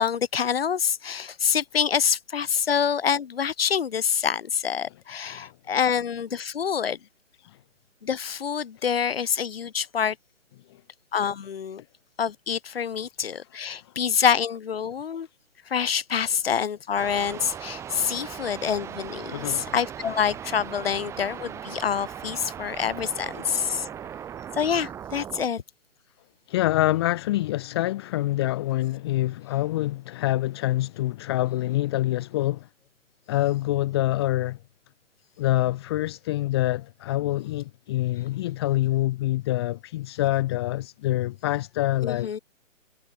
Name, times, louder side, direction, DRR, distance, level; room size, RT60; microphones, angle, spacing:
voice 1, 0.0-7.0 8.0-10.2 11.1-11.8 12.2-15.3 15.7-23.9 24.5-25.6 42.0-42.4, left 7 dB, 45° left, 4.1 m, -26 dB
sound 1, 17.0-25.5, right 9 dB, 5° right, 3.8 m, -38 dB
voice 2, 19.3-19.7 26.5-32.7 33.3-34.6 35.4-42.3, left 16 dB, 20° left, 2.4 m, -26 dB
hypercardioid pair, 170°, 39 cm